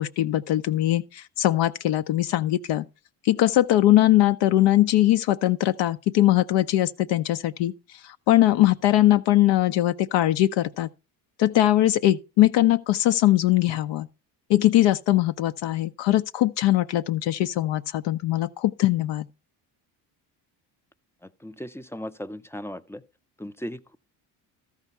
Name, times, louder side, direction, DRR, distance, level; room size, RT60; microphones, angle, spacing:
voice 1, 0.0-2.8 3.2-7.7 8.0-10.9 11.4-14.1 14.5-19.3, left 14 dB, 60° left, 0.6 m, -21 dB
voice 2, 21.4-23.0 23.4-24.0, equal, 5° left, 0.5 m, -37 dB
13.5 x 4.8 x 5.4 m
hypercardioid pair, 60°, 50 cm